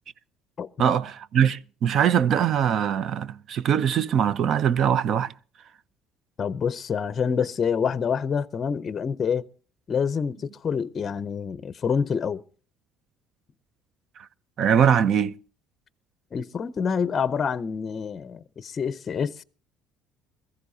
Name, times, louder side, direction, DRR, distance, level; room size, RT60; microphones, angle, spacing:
voice 1, 0.8-5.3 14.6-15.3, right 8 dB, 50° right, 0.6 m, -22 dB
voice 2, 6.4-9.5 9.9-12.4 16.3-19.4, left 6 dB, 30° left, 0.6 m, -27 dB
21.5 x 15.0 x 2.7 m
cardioid pair, 135°, 0 cm